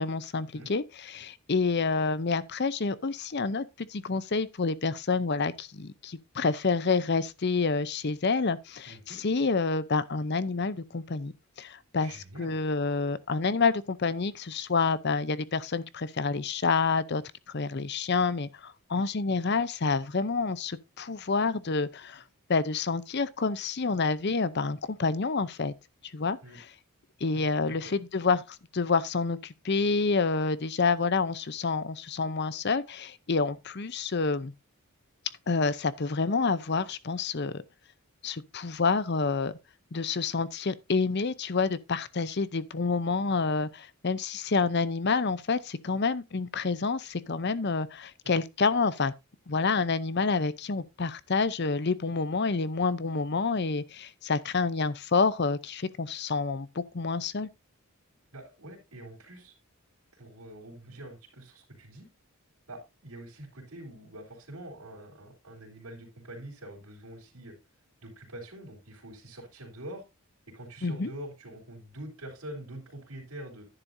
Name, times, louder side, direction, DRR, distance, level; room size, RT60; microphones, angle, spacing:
voice 1, 0.0-11.3 11.6-17.2 17.5-22.2 22.5-25.7 26.1-26.7 27.2-34.5 35.5-37.6 38.2-39.5 39.9-49.1 49.5-57.5 70.8-71.1, left 4 dB, 50° left, 0.7 m, -28 dB
voice 2, 8.9-9.2 12.0-12.6 26.4-26.6 27.3-27.9 48.2-48.4 58.3-59.5 60.1-62.1 62.7-67.6 68.0-70.0 70.5-73.7, right 1 dB, 85° right, 3.8 m, -45 dB
11.0 x 10.0 x 2.7 m
head